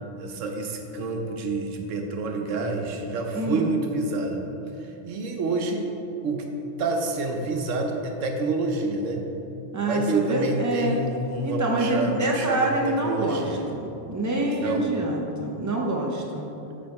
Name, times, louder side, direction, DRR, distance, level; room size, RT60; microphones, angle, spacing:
voice 1, 0.2-4.4 5.1-6.0 6.2-6.5 6.8-9.3 9.8-13.7 14.4-14.9, right 3 dB, 90° right, 3 dB, 1.1 m, -28 dB
voice 2, 3.3-3.7 9.7-11.0 11.4-16.5, right 1 dB, 20° right, -1 dB, 0.6 m, -26 dB
7.8 x 4.2 x 4.6 m, 2.9 s
omnidirectional pair, 1.3 m